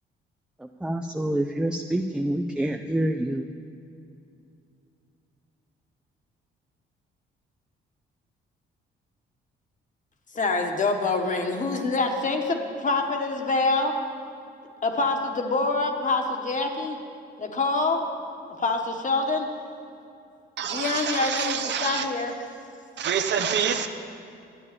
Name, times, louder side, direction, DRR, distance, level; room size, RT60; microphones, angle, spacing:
voice 1, 0.6-3.5, right 1 dB, 5° right, 5 dB, 0.4 m, -27 dB
voice 2, 10.3-13.9 14.8-17.0 17.4-18.1 18.6-19.5 20.7-22.3, left 3 dB, 40° left, 4 dB, 1.3 m, -25 dB
voice 3, 20.6-22.1 23.0-23.9, right 7 dB, 60° right, 7 dB, 0.9 m, -27 dB
11.0 x 8.4 x 6.8 m, 2.6 s
cardioid pair, 90°, 20 cm